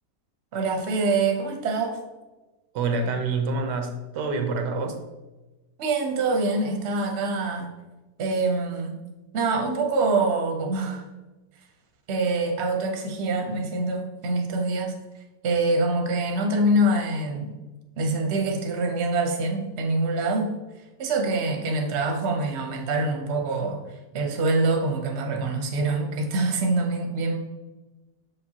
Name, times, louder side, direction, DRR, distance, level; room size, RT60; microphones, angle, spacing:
voice 1, 0.5-2.0 5.8-7.7 8.2-8.9 9.3-11.0 12.1-14.9 15.4-17.6 18.0-20.5 21.0-23.8 24.1-27.4, right 2 dB, 50° right, 3 dB, 1.0 m, -25 dB
voice 2, 2.7-5.0, right 3 dB, 85° right, 5 dB, 1.4 m, -27 dB
6.6 x 5.1 x 2.9 m, 1.1 s
omnidirectional pair, 1.8 m